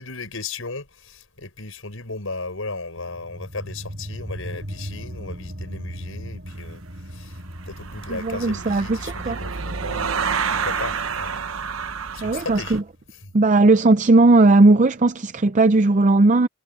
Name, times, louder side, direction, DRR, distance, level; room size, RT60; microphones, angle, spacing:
voice 1, 0.0-7.4 7.7-11.4 12.1-12.8 13.2-13.3, left 3 dB, 80° left, 5.2 m, -35 dB
sound 1, 3.0-14.1, equal, 55° right, 7.6 m, -39 dB
sound 2, 6.5-6.8 7.4-12.8, right 6 dB, 85° right, 1.1 m, -29 dB
voice 2, 8.1-9.4 12.2-12.8 13.3-16.5, right 2 dB, 35° right, 0.5 m, -17 dB
head